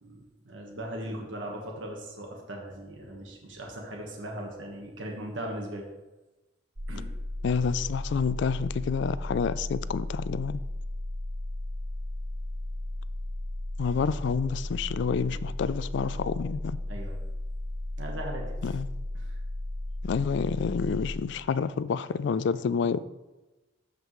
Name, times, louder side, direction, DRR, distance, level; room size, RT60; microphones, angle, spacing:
voice 1, 0.0-5.8 6.9-7.1 16.9-17.2 18.0-18.7 19.2-19.4, right 1 dB, 90° right, 1.4 m, -39 dB
sound 1, 6.8-21.2, left 1 dB, 35° right, 0.8 m, -35 dB
voice 2, 7.4-10.6 13.8-16.8 18.6-18.9 20.0-23.0, left 6 dB, 65° left, 0.3 m, -28 dB
13.5 x 5.3 x 3.1 m
head